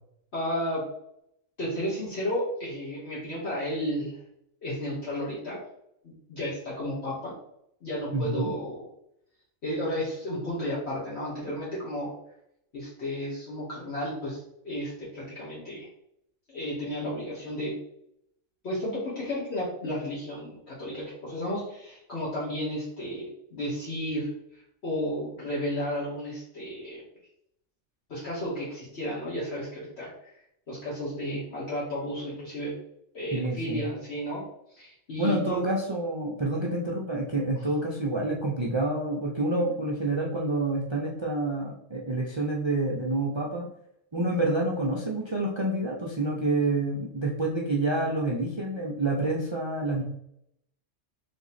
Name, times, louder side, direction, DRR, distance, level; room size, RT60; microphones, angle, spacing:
voice 1, 0.3-0.8 1.6-4.2 4.6-5.6 6.0-7.3 7.8-8.9 9.6-12.1 12.7-15.9 16.5-17.7 18.6-27.0 28.1-32.7 33.1-34.4 34.7-35.6, equal, 60° left, -7 dB, 1.4 m, -33 dB
voice 2, 8.1-8.5 33.3-33.8 35.2-43.7 44.1-50.0, right 2 dB, 40° right, -2 dB, 0.4 m, -28 dB
3.4 x 2.9 x 4.0 m, 0.75 s
omnidirectional pair, 1.3 m